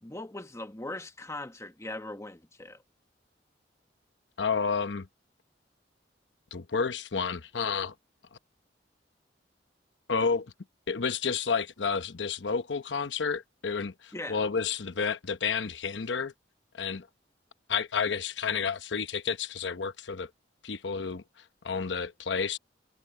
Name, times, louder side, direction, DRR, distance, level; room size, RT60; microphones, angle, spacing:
voice 1, 0.0-2.8 14.1-14.4, left 2 dB, 15° left, 1.3 m, -40 dB
voice 2, 4.4-5.1 6.5-7.9 8.3-8.4 10.1-10.5 10.9-16.3 16.7-17.1 17.7-20.3 20.6-22.6, left 5 dB, 80° left, 0.9 m, -30 dB
head